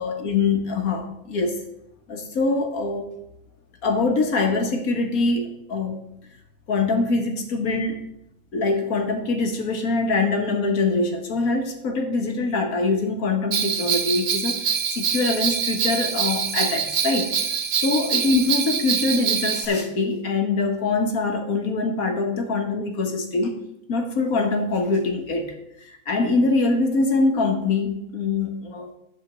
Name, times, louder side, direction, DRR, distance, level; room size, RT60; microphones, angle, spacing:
voice 1, 0.0-1.6 2.1-3.1 3.8-6.0 6.7-8.0 8.5-14.6 14.9-17.3 17.8-23.5 23.9-25.5 26.1-28.9, left 3 dB, 90° left, 4 dB, 1.8 m, -23 dB
Bell, 13.5-19.7, right 7 dB, 70° right, 1.2 m, -25 dB
11.0 x 4.4 x 7.2 m, 0.82 s
omnidirectional pair, 1.5 m